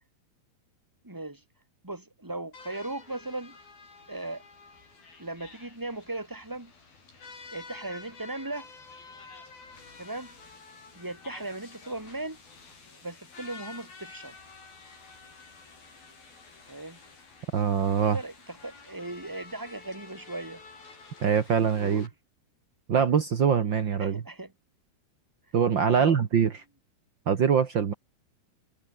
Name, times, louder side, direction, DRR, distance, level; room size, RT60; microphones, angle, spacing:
voice 1, 1.0-1.4 1.8-3.6 4.1-4.4 5.2-6.7 7.5-8.7 10.0-10.3 10.9-12.4 13.0-14.3 16.6-17.0 17.9-20.9 21.6-22.1 24.0-24.5 25.8-26.2, right 2 dB, 5° right, 3.0 m, -38 dB
sound 1, 2.5-22.1, left 4 dB, 60° left, 9.3 m, -50 dB
voice 2, 17.5-18.2 21.2-22.1 22.9-24.2 25.5-26.5 27.3-27.9, right 7 dB, 65° right, 1.1 m, -23 dB
omnidirectional pair, 4.7 m